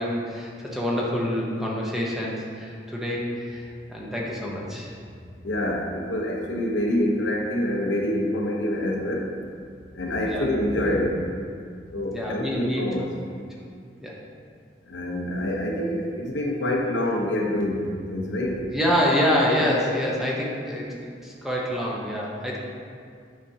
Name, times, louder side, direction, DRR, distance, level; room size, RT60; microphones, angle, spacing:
voice 1, 0.0-4.9 10.3-10.5 12.1-12.8 14.0-14.2 18.7-22.6, equal, ahead, -4 dB, 0.8 m, -26 dB
voice 2, 5.4-9.3 9.9-11.3 11.9-13.1 14.9-18.7, left 1 dB, 80° left, 0 dB, 0.9 m, -26 dB
8.7 x 5.0 x 2.8 m, 2.2 s
head